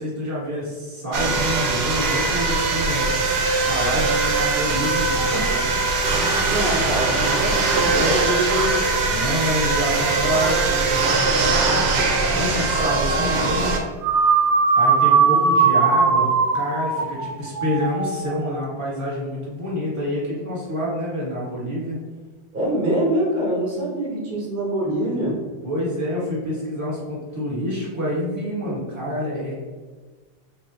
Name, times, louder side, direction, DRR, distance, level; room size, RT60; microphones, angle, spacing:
voice 1, 0.0-3.1 3.5-5.3 7.9-8.2 9.0-13.7 14.7-22.0 25.6-29.6, equal, 15° right, -7 dB, 1.2 m, -27 dB
sound 1, 1.1-13.8, right 3 dB, 70° right, 1.0 m, -21 dB
voice 2, 5.3-5.8 6.4-8.8 15.1-15.7 22.5-25.4, right 1 dB, 50° right, -5 dB, 0.6 m, -25 dB
sound 2, 14.0-18.6, right 5 dB, 90° right, 1.5 m, -19 dB
3.9 x 3.3 x 2.8 m, 1.3 s
omnidirectional pair, 2.3 m